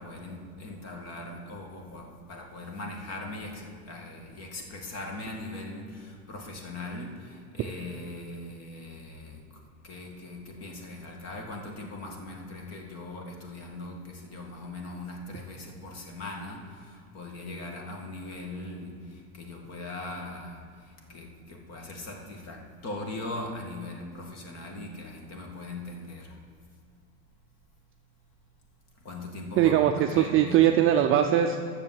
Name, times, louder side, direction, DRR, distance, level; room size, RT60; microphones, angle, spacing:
voice 1, 0.0-9.4 9.8-26.4 29.0-30.6, left 2 dB, 40° left, 2 dB, 2.0 m, -40 dB
voice 2, 29.6-31.6, right 11 dB, 35° right, 4 dB, 0.4 m, -21 dB
9.2 x 6.9 x 7.6 m, 2.3 s
supercardioid pair, 135°, 41 cm